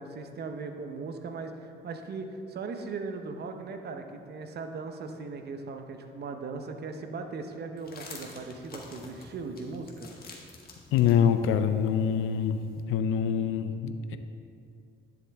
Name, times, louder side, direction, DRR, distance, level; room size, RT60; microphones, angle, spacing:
voice 1, 0.0-10.1, right 4 dB, 55° right, 6 dB, 0.8 m, -38 dB
sound 1, 7.8-12.8, left 3 dB, 50° left, 1.6 m, -49 dB
voice 2, 10.9-12.6 12.9-14.2, left 8 dB, 85° left, 10 dB, 0.5 m, -25 dB
11.0 x 7.4 x 3.5 m, 2.5 s
cardioid pair, 90°, 20 cm